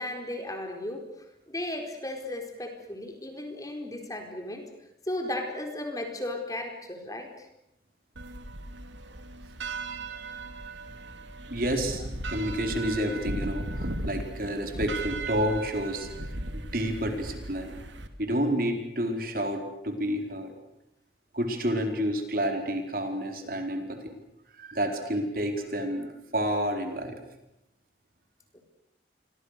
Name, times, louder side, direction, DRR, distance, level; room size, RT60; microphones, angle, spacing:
voice 1, 0.0-4.7 5.1-7.5 28.5-28.6, left 1 dB, 20° left, 4 dB, 4.4 m, -35 dB
sound 1, 8.2-18.1, right 2 dB, 85° right, 2.8 m, -37 dB
voice 2, 11.5-16.1 16.5-17.7 18.2-20.5 21.3-24.1 24.6-27.2, equal, 50° right, 5 dB, 4.4 m, -30 dB
30.0 x 24.0 x 6.7 m, 0.87 s
head